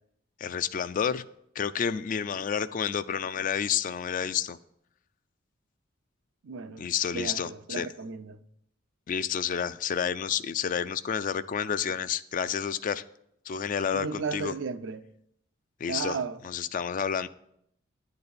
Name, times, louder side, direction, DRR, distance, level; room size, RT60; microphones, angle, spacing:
voice 1, 0.4-1.2 1.6-4.6 6.8-7.9 9.1-13.0 13.5-14.5 15.8-16.2 16.4-17.3, left 7 dB, 40° left, 0.3 m, -30 dB
voice 2, 6.4-8.4 13.9-15.1 15.9-16.4, right 5 dB, 70° right, 0.5 m, -35 dB
10.0 x 4.1 x 6.8 m
head